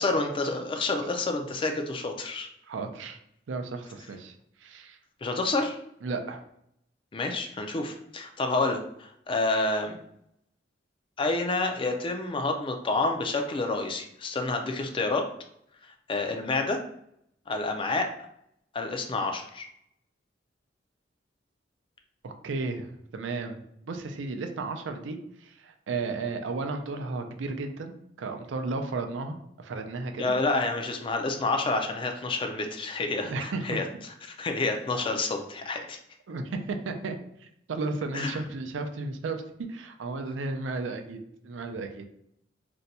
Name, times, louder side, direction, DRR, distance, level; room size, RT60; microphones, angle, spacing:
voice 1, 0.0-2.5 5.2-5.8 7.1-10.0 11.2-15.2 16.1-16.8 17.5-18.1 18.7-19.7 30.2-33.8 34.2-36.0 38.1-38.4, left 3 dB, 30° left, 4 dB, 0.4 m, -28 dB
voice 2, 2.7-3.2 3.5-4.3 4.6-5.0 6.0-6.4 22.2-22.9 23.1-30.3 33.2-33.8 36.3-42.0, right 3 dB, 80° right, 6 dB, 0.4 m, -34 dB
2.6 x 2.2 x 4.0 m, 0.73 s
head